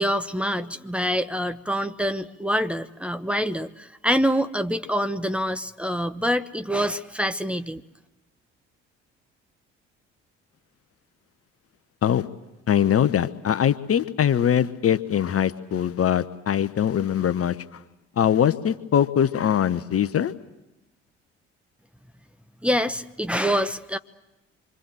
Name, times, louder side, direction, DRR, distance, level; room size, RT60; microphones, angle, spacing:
voice 1, 0.0-7.8 22.6-24.0, equal, 5° right, 9 dB, 1.2 m, -25 dB
voice 2, 12.7-17.6 18.2-20.3, left 9 dB, 40° left, 13 dB, 1.2 m, -22 dB
26.0 x 25.0 x 7.9 m, 1.0 s
figure-of-eight pair, 50°, 34 cm